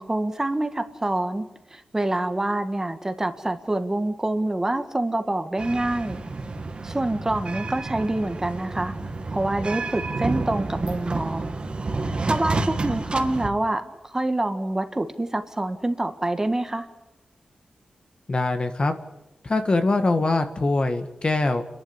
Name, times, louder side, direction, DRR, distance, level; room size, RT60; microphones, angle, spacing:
voice 1, 0.0-6.2 6.8-8.9 9.3-11.5 12.0-16.9, right 1 dB, 20° right, 8 dB, 1.7 m, -26 dB
sound 1, 5.6-13.5, right 3 dB, 40° right, 2.1 m, -30 dB
voice 2, 18.3-18.9 19.4-21.6, left 2 dB, 40° left, 7 dB, 2.0 m, -23 dB
29.5 x 12.0 x 9.8 m, 0.97 s
wide cardioid pair, 90°, 3 cm